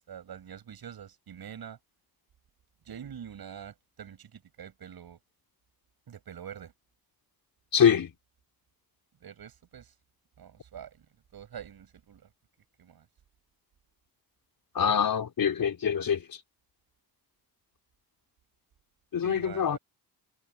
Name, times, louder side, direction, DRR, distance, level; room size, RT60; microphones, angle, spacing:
voice 1, 0.0-1.8 2.9-5.2 6.1-6.7 9.2-9.9 10.4-11.0 11.3-12.2 12.8-13.1 19.2-19.8, right 9 dB, 70° right, 7.6 m, -45 dB
voice 2, 7.7-8.1 14.7-16.2 19.1-19.8, left 8 dB, 60° left, 4.1 m, -24 dB
cardioid pair, 90°, 38 cm